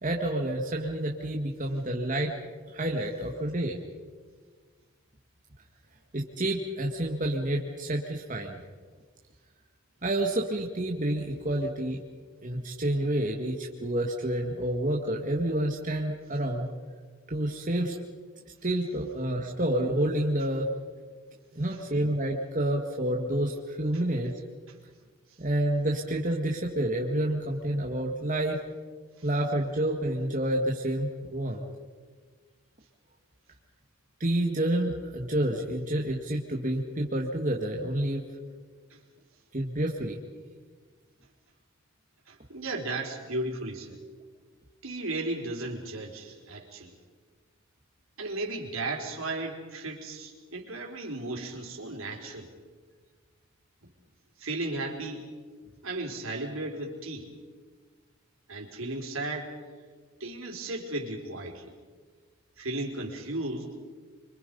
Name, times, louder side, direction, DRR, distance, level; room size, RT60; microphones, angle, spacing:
voice 1, 0.0-2.3 2.7-3.8 6.1-8.6 10.0-12.0 12.4-16.7 17.3-18.0 18.6-20.7 21.6-24.3 25.4-28.6 29.2-31.6 34.2-38.2 39.5-40.2, right 1 dB, 35° right, 0 dB, 1.9 m, -29 dB
voice 2, 42.3-44.0 44.8-47.0 48.2-52.5 53.8-53.9 54.4-55.3 55.8-57.3 58.5-59.5 60.2-61.7 62.6-63.7, right 2 dB, 70° right, 0 dB, 4.3 m, -35 dB
26.5 x 25.0 x 5.5 m, 1.5 s
head